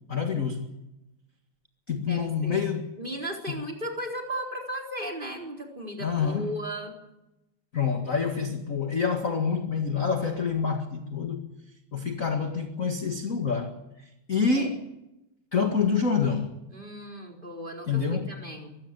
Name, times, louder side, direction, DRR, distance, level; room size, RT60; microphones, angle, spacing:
voice 1, 0.1-0.7 1.9-2.9 3.5-3.6 6.0-6.5 7.7-11.5 11.9-13.8 14.3-14.8 15.5-16.5 17.9-18.3, left 5 dB, 30° left, 1.8 m, -27 dB
voice 2, 2.1-2.6 3.0-6.9 14.4-14.7 16.7-18.8, right 1 dB, 15° right, 4.2 m, -36 dB
23.5 x 16.5 x 9.1 m
omnidirectional pair, 3.4 m